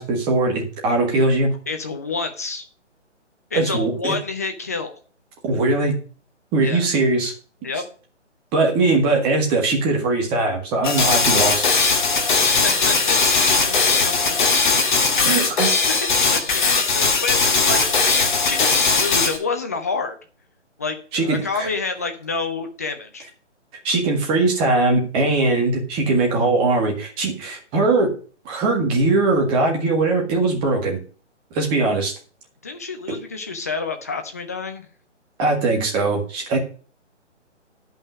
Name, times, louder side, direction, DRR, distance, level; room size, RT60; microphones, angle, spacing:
voice 1, 0.0-1.5 3.5-4.1 5.4-6.0 6.5-7.3 8.5-11.7 15.2-15.8 21.1-21.7 23.8-28.1 28.5-31.0 31.5-32.1 35.4-36.6, right 3 dB, 15° right, 1 dB, 1.8 m, -20 dB
voice 2, 1.7-2.7 3.5-5.0 6.6-6.9 7.6-7.8 12.4-14.3 15.7-20.2 20.8-23.3 32.6-34.9, left 4 dB, 15° left, 5 dB, 0.5 m, -29 dB
sound 1, 10.8-19.4, left 4 dB, 40° left, 1.9 m, -19 dB
10.5 x 5.7 x 6.3 m, 0.39 s
figure-of-eight pair, 145°, 36 cm